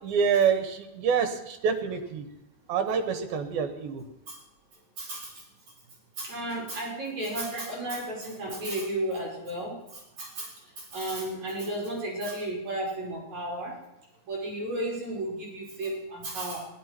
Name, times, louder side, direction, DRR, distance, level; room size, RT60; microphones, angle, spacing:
voice 1, 0.0-2.3 2.7-4.0, right 6 dB, 80° right, 9 dB, 3.1 m, -26 dB
voice 2, 5.0-5.4 6.2-13.7 14.3-16.7, right 1 dB, 50° right, -3 dB, 4.2 m, -33 dB
17.5 x 11.5 x 4.4 m, 0.90 s
omnidirectional pair, 4.2 m